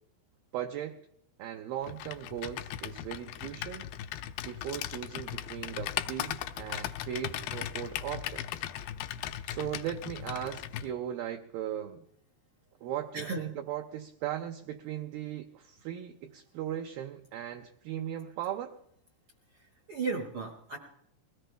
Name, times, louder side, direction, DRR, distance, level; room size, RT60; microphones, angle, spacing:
voice 1, 0.5-1.0 1.4-3.9 4.4-8.7 9.5-12.0 12.8-18.8, right 11 dB, 80° right, 5 dB, 2.2 m, -38 dB
Computer keyboard, 1.8-10.9, left 12 dB, 80° left, 2.4 m, -38 dB
voice 2, 19.6-20.8, right 4 dB, 60° right, 2 dB, 1.4 m, -35 dB
22.0 x 16.5 x 3.4 m, 0.71 s
omnidirectional pair, 4.9 m